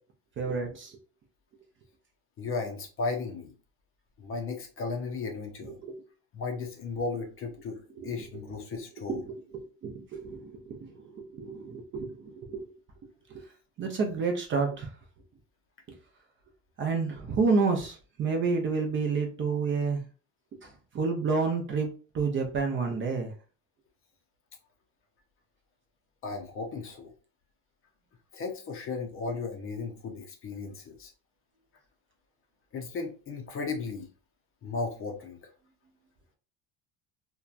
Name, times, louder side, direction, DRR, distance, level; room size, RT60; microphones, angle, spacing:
voice 1, 0.4-1.0 5.8-6.0 8.0-8.1 8.7-12.7 13.3-13.4 13.8-14.9 15.9-16.0 16.8-20.0 20.5-23.3, right 4 dB, 30° right, 3 dB, 0.5 m, -30 dB
voice 2, 2.4-3.5 4.2-5.8 6.3-9.2 26.2-27.1 28.3-31.1 32.7-34.1 34.6-35.4, left 4 dB, 35° left, 3 dB, 0.5 m, -35 dB
2.8 x 2.2 x 2.4 m, 0.36 s
cardioid pair, 130°, 39 cm